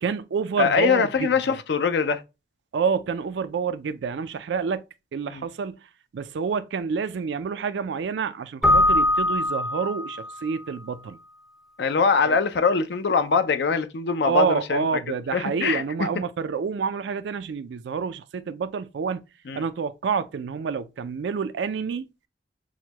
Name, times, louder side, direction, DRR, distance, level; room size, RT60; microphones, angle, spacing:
voice 1, 0.0-1.3 2.7-4.8 5.1-11.2 12.2-12.4 14.2-19.2 19.5-22.0, right 6 dB, 90° right, 0.4 m, -28 dB
voice 2, 0.6-2.2 5.3-5.4 11.8-14.8 15.3-15.8 19.5-19.6, left 5 dB, 75° left, 0.4 m, -22 dB
Keyboard (musical), 8.6-10.4, left 1 dB, ahead, 0.4 m, -21 dB
6.2 x 2.1 x 2.8 m
head